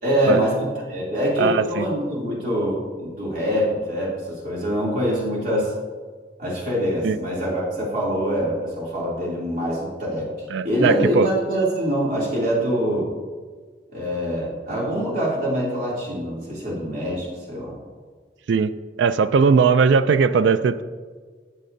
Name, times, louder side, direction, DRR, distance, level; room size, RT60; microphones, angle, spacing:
voice 1, 0.0-5.7 6.4-10.3 10.6-13.1 13.9-17.7, equal, 50° right, -6 dB, 2.7 m, -24 dB
voice 2, 1.4-1.8 7.0-7.2 10.5-11.3 18.5-18.7 19.0-20.8, right 5 dB, 80° right, 13 dB, 0.3 m, -19 dB
14.0 x 7.4 x 2.6 m, 1.5 s
head